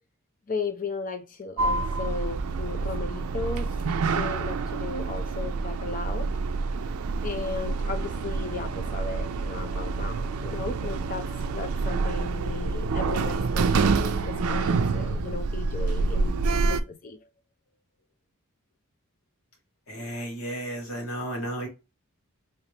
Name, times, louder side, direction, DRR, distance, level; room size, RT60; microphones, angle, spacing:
voice 1, 0.5-3.7 4.1-6.3 7.2-17.2, left 4 dB, 40° left, 0.6 m, -36 dB
Sliding door, 1.6-16.8, right 4 dB, 85° right, 0.4 m, -27 dB
voice 2, 19.9-21.7, right 1 dB, 80° left, 1.8 m, -33 dB
3.3 x 3.3 x 2.9 m
head